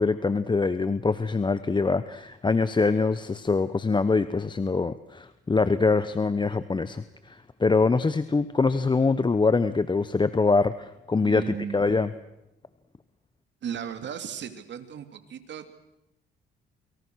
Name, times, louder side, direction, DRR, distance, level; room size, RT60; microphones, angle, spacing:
voice 1, 0.0-12.1, left 4 dB, 25° left, 13 dB, 1.1 m, -24 dB
voice 2, 11.2-11.8 13.6-15.7, right 8 dB, 65° right, 8 dB, 3.2 m, -36 dB
29.0 x 24.5 x 6.5 m, 0.88 s
cardioid pair, 90°, 20 cm